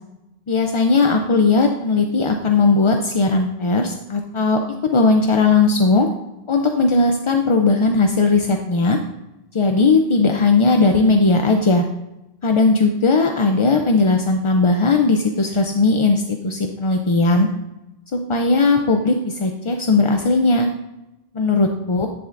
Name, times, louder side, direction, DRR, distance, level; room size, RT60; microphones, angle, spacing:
voice 1, 0.5-4.6 4.9-6.1 6.5-9.0 9.5-11.8 12.4-17.5 18.1-20.7 21.3-22.1, left 3 dB, 40° left, 3 dB, 0.5 m, -17 dB
10.5 x 7.1 x 2.5 m, 0.96 s
omnidirectional pair, 1.1 m